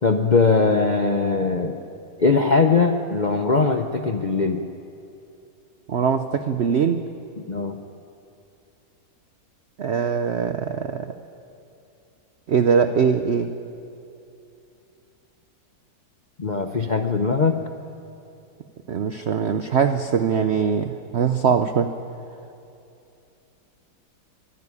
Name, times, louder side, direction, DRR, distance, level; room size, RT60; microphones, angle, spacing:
voice 1, 0.0-1.8 2.2-4.7 7.5-7.8 16.4-17.6, left 4 dB, 55° left, 5 dB, 0.5 m, -20 dB
voice 2, 5.9-7.0 9.8-11.1 12.5-13.5 18.9-21.9, right 6 dB, 75° right, 9 dB, 0.6 m, -22 dB
24.0 x 12.0 x 9.7 m, 2.7 s
omnidirectional pair, 2.0 m